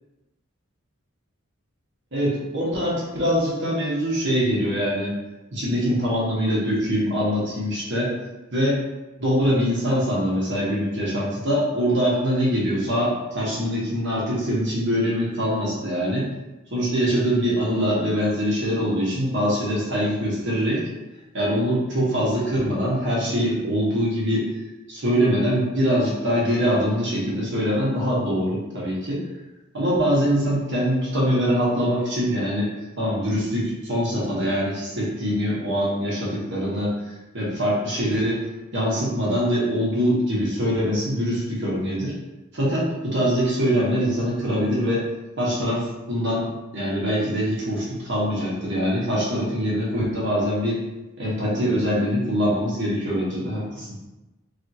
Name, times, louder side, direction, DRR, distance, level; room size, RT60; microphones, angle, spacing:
voice 1, 2.1-5.1 5.5-8.1 8.5-8.8 9.2-16.3 16.7-20.8 21.3-24.5 24.9-29.2 29.7-32.7 33.0-38.5 38.7-42.1 42.5-45.1 45.4-50.8 51.2-53.9, equal, 60° right, -5 dB, 1.1 m, -23 dB
3.4 x 2.5 x 2.7 m, 1.0 s
head